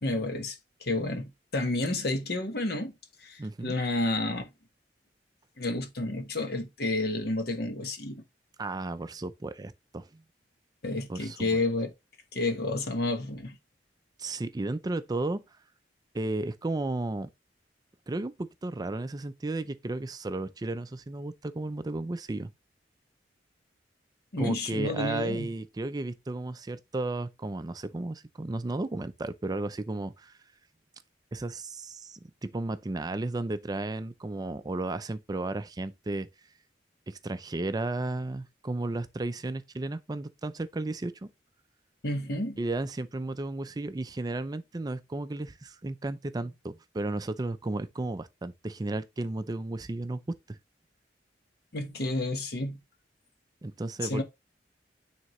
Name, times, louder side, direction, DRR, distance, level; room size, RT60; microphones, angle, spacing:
voice 1, 0.0-2.9 3.2-4.5 5.6-8.2 10.8-11.9 12.3-13.5 24.3-25.5 42.0-42.6 51.7-52.8 54.1-54.2, left 2 dB, 60° left, 1.2 m, -30 dB
voice 2, 3.4-3.8 8.6-10.2 11.1-11.6 14.2-15.4 16.1-17.3 18.1-22.5 24.4-30.4 31.3-36.3 37.1-41.3 42.6-50.6 53.6-54.2, right 2 dB, 20° right, 0.4 m, -34 dB
9.3 x 3.6 x 3.0 m
head